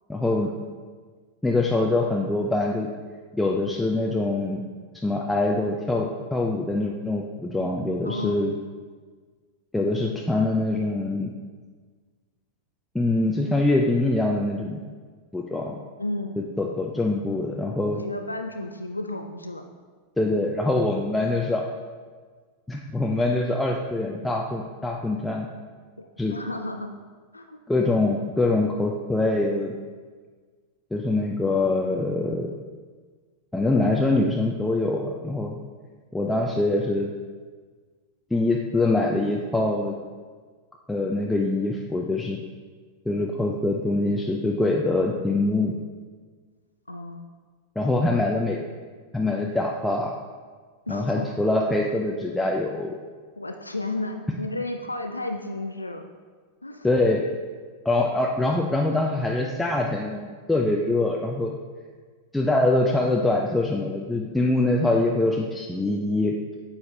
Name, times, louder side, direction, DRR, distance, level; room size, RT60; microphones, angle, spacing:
voice 1, 0.1-0.5 1.4-2.9 3.3-4.6 5.0-8.5 9.7-11.3 12.9-14.8 15.3-15.8 16.4-18.0 20.2-21.6 22.7-25.5 26.2-26.4 27.7-29.7 30.9-32.5 33.5-35.6 36.1-37.1 38.3-39.9 40.9-42.4 43.1-45.8 47.8-48.6 49.1-50.1 50.9-53.0 56.8-57.2 57.8-61.6 62.3-66.4, left 2 dB, 5° left, -1 dB, 0.6 m, -24 dB
voice 2, 8.0-8.5 16.0-16.4 17.9-19.6 26.0-26.9 27.3-27.6 46.9-47.3 50.9-51.3 53.4-56.1 56.6-56.9 60.8-60.9, left 2 dB, 85° left, 5 dB, 0.4 m, -33 dB
9.3 x 7.1 x 3.3 m, 1.5 s
figure-of-eight pair, 90°, 0 cm